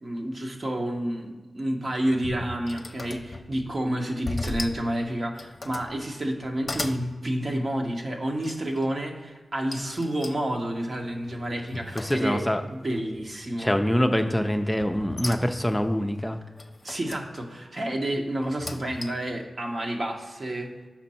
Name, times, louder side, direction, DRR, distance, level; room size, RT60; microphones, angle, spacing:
voice 1, 0.0-13.7 16.8-20.7, right 1 dB, 50° right, 2 dB, 1.2 m, -30 dB
sound 1, 1.8-3.7 4.3-4.9 5.3-5.9 6.4-7.1 8.4-8.9 9.7-12.6 13.0-13.5 14.8-15.8 16.6-17.3 18.4-19.3, left 2 dB, 45° left, 0.7 m, -37 dB
voice 2, 12.0-12.6 13.6-16.4, equal, 10° left, 6 dB, 0.5 m, -25 dB
6.0 x 5.2 x 4.3 m, 1.3 s
cardioid pair, 40°, 0 cm